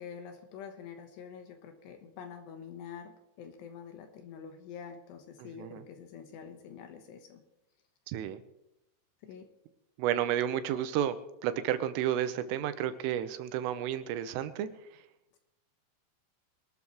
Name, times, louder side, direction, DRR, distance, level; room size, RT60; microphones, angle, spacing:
voice 1, 0.0-7.4 9.2-9.5, left 7 dB, 70° left, 6 dB, 2.9 m, -46 dB
voice 2, 8.1-8.4 10.0-11.2 11.4-14.7, right 11 dB, 85° right, 11 dB, 3.4 m, -31 dB
23.5 x 12.5 x 3.1 m, 0.88 s
omnidirectional pair, 5.8 m